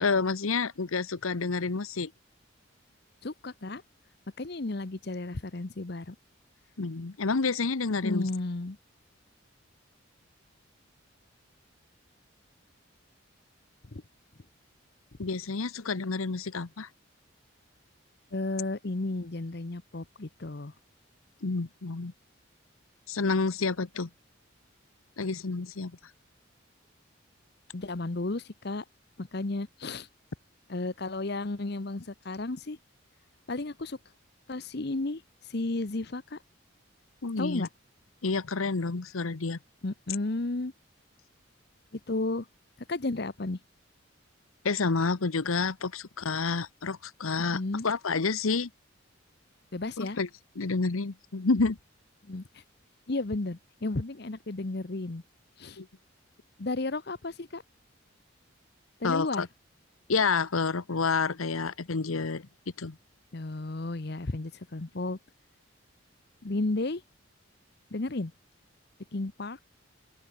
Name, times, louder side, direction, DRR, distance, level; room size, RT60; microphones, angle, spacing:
voice 1, 0.0-2.1 6.8-8.3 15.2-16.9 21.4-22.1 23.1-24.1 25.2-25.9 37.2-37.7 38.2-39.6 44.6-48.7 50.0-50.3 50.6-51.8 55.8-55.9 59.0-59.5 60.1-62.5 62.8-63.0, left 4 dB, 90° left, 1.0 m, -29 dB
voice 2, 3.2-3.8 4.4-6.2 8.0-8.8 13.9-14.0 18.3-20.7 27.7-28.8 29.2-30.1 30.7-32.8 33.5-34.0 34.5-35.2 35.5-36.4 37.4-37.7 39.8-40.7 41.9-42.5 42.9-43.6 47.5-47.9 49.7-50.2 52.3-52.6 53.1-55.2 55.6-55.8 56.6-57.6 59.0-59.5 63.3-65.2 66.4-67.0 67.9-68.3 69.1-69.6, left 2 dB, 50° left, 0.9 m, -33 dB
open air
head